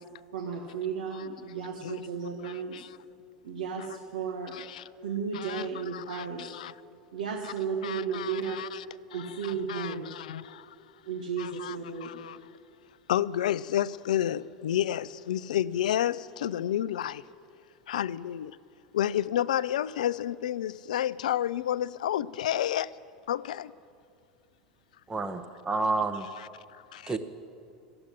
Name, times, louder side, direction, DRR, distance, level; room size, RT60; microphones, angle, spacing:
voice 1, 0.3-2.8 3.4-4.6 5.0-6.4 7.1-8.6 9.1-10.1 11.1-12.2, right 6 dB, 75° right, 1 dB, 1.5 m, -34 dB
voice 2, 2.4-3.0 3.8-3.9 4.5-4.9 5.3-6.7 7.4-7.5 7.8-8.9 9.1-10.8 11.4-12.4 13.1-17.2 17.9-18.6 18.9-22.9 23.3-23.7 26.4-26.5 26.9-27.2, left 11 dB, 75° left, 19 dB, 0.4 m, -31 dB
voice 3, 25.1-26.3 27.1-27.2, right 3 dB, 15° right, 8 dB, 1.0 m, -29 dB
13.5 x 8.7 x 9.9 m, 2.5 s
hypercardioid pair, 90°, 4 cm